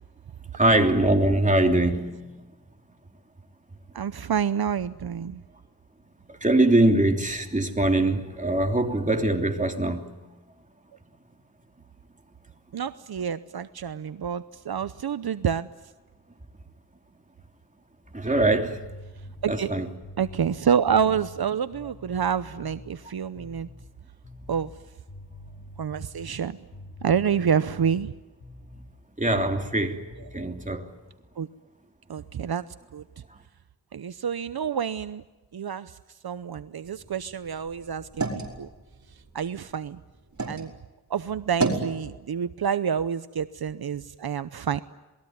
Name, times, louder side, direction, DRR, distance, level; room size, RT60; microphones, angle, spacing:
voice 1, 0.5-2.2 6.3-10.1 18.1-18.8 19.5-19.9 29.2-30.0 30.3-30.9, right 1 dB, 20° right, 3.0 m, -22 dB
voice 2, 3.9-5.4 12.7-15.7 19.4-19.8 20.2-23.7 24.5-24.7 25.8-26.6 27.0-28.1 31.4-31.5 32.1-32.6 32.9-33.0 33.9-35.2 35.5-36.0 36.2-38.7 39.3-40.0 40.5-40.7 41.1-44.8, right 7 dB, 70° right, 0.8 m, -28 dB
sound 1, 18.0-23.0 23.3-23.9 24.2-28.9 29.3-29.8 30.1-30.8, left 1 dB, 40° left, 5.2 m, -45 dB
sound 2, 36.8-40.6 41.1-41.9, right 3 dB, 45° right, 5.1 m, -33 dB
27.5 x 20.5 x 9.4 m
wide cardioid pair, 85°, 39 cm